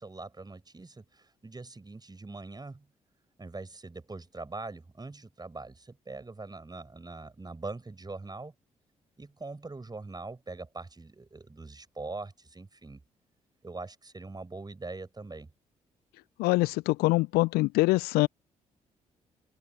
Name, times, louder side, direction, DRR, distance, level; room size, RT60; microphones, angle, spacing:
voice 1, 0.0-2.9 3.4-8.5 9.2-13.0 13.6-15.5, right 3 dB, 25° right, 6.7 m, -42 dB
voice 2, 16.4-18.3, left 21 dB, 65° left, 0.7 m, -24 dB
figure-of-eight pair, 40°, 17 cm